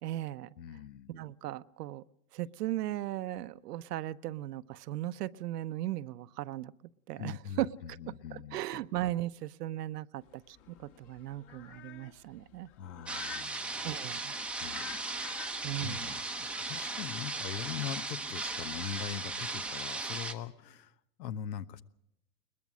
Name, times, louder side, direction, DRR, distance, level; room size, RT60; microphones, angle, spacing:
voice 1, 0.0-0.5 1.1-2.0 2.3-6.7 7.1-7.7 8.3-12.7 13.8-14.3 15.6-16.1, right 14 dB, 70° right, 15 dB, 0.9 m, -37 dB
voice 2, 0.6-1.1 7.1-8.8 12.8-13.8 14.6-21.8, left 9 dB, 80° left, 14 dB, 1.3 m, -42 dB
sound 1, 10.2-19.8, left 11 dB, 40° left, 1.9 m, -52 dB
sound 2, 13.1-20.3, right 3 dB, ahead, 0.7 m, -37 dB
22.0 x 20.5 x 6.3 m, 0.79 s
hypercardioid pair, 140°, 50 cm